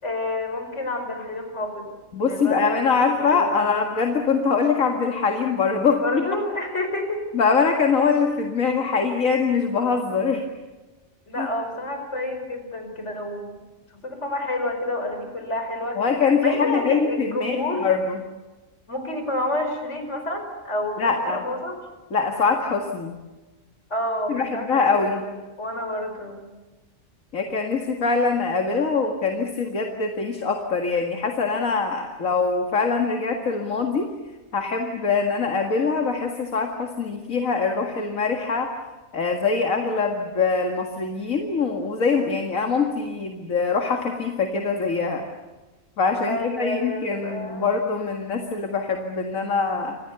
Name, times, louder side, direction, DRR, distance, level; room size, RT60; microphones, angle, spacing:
voice 1, 0.0-1.9 2.2-3.6 6.0-7.2 11.3-13.5 14.0-16.0 16.4-17.9 18.9-21.8 23.9-26.5 46.3-47.7, left 1 dB, 55° left, 5 dB, 5.6 m, -29 dB
voice 2, 2.1-6.3 7.3-10.4 11.4-11.5 16.0-18.2 21.0-21.4 22.1-23.2 24.3-25.2 27.3-34.1 34.5-38.7 39.1-45.2 46.0-50.0, left 5 dB, 75° left, 3 dB, 2.4 m, -23 dB
29.0 x 26.0 x 6.9 m, 1.2 s
omnidirectional pair, 1.4 m